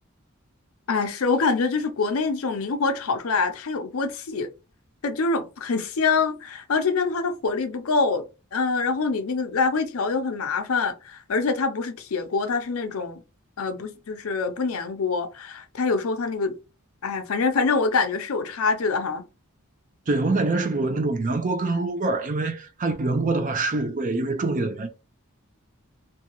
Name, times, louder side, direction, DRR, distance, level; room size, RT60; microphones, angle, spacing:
voice 1, 0.9-4.5 5.0-8.2 8.5-13.2 13.6-16.5 17.0-19.3, left 4 dB, 75° left, 0.6 m, -25 dB
voice 2, 20.1-24.9, right 3 dB, 40° right, 0.5 m, -25 dB
2.7 x 2.3 x 2.9 m
head